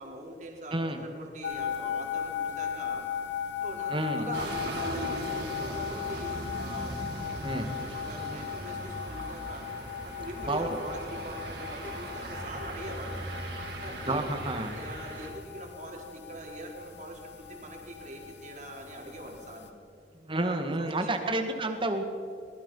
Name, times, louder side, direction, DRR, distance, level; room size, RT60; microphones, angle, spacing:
voice 1, 0.0-3.0 3.6-5.3 5.6-9.7 10.0-13.2 13.8-19.7 20.3-21.3, right 1 dB, 45° right, 0 dB, 4.2 m, -43 dB
voice 2, 0.7-1.0 3.9-4.3 7.4-7.7 10.5-10.8 13.9-14.7 20.2-22.0, right 1 dB, 30° right, 6 dB, 2.2 m, -30 dB
sound 1, 1.4-19.7, left 8 dB, 85° left, 1.7 m, -38 dB
sound 2, 4.3-15.3, right 1 dB, 70° right, 4.5 m, -39 dB
23.0 x 20.0 x 5.7 m, 2.5 s
head